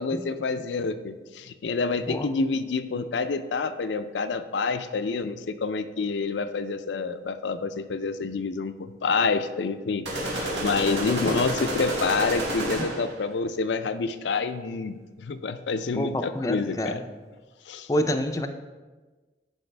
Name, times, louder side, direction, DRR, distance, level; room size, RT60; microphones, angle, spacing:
voice 1, 0.0-17.0 17.7-17.9, left 4 dB, 90° left, 10 dB, 0.5 m, -28 dB
voice 2, 2.1-2.4 16.0-17.0 17.9-18.5, left 1 dB, 20° left, 7 dB, 0.4 m, -27 dB
sound 1, 10.1-13.2, right 1 dB, 90° right, 2.2 m, -30 dB
10.5 x 4.8 x 3.3 m, 1.3 s
head